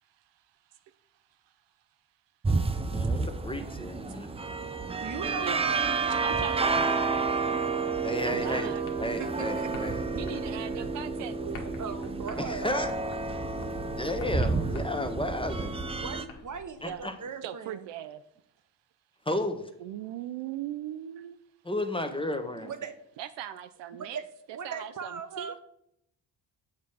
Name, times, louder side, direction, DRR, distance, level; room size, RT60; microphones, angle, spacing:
sound 1, 2.4-16.2, right 4 dB, 15° right, 0.4 m, -30 dB
voice 1, 2.9-4.3 8.0-8.7 9.0-10.0 12.4-12.9 14.0-15.8 16.8-17.1 19.3-19.7 21.6-22.7, left 1 dB, 10° left, 7 dB, 0.8 m, -33 dB
voice 2, 5.0-6.6 9.2-9.7 11.8-12.7 14.5-14.8 16.0-17.9 22.6-23.0 24.1-24.2 24.5-25.6, right 6 dB, 35° right, 10 dB, 0.9 m, -39 dB
sound 2, 5.7-17.1, left 3 dB, 75° left, 1.4 m, -50 dB
voice 3, 6.2-6.7 8.3-8.8 10.1-12.0 16.8-17.1 17.4-18.2 19.8-21.4 22.6-22.7 23.2-24.2 24.5-25.6, right 11 dB, 65° right, 12 dB, 0.5 m, -39 dB
7.3 x 3.1 x 5.6 m, 0.75 s
hypercardioid pair, 55°, 49 cm